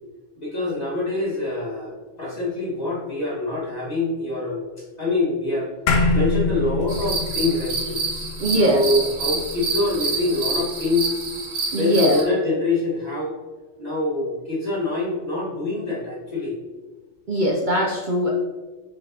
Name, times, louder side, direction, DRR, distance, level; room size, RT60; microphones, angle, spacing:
voice 1, 0.4-4.6 5.0-5.7 6.1-8.0 8.5-11.1 11.8-13.4 13.8-16.6, left 2 dB, 35° left, -6 dB, 1.6 m, -25 dB
sound 1, 5.9-10.5, left 3 dB, 85° left, 1.1 m, -25 dB
sound 2, 6.9-12.2, right 3 dB, 85° right, 1.4 m, -28 dB
voice 2, 8.4-8.8 11.7-12.2 17.3-18.3, right 1 dB, 50° right, -1 dB, 0.6 m, -21 dB
6.3 x 5.5 x 2.8 m, 1.3 s
omnidirectional pair, 1.3 m